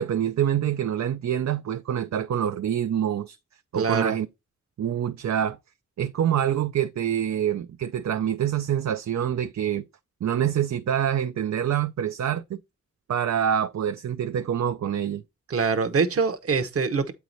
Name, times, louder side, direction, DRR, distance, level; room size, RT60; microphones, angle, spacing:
voice 1, 0.0-3.4 3.7-4.3 4.8-5.6 6.0-9.8 10.2-12.6 13.1-15.2, right 9 dB, 70° right, 0.5 m, -26 dB
voice 2, 3.7-4.1 15.5-17.1, right 5 dB, 50° right, 1.0 m, -24 dB
8.1 x 4.7 x 3.9 m
wide cardioid pair, 80°, 29 cm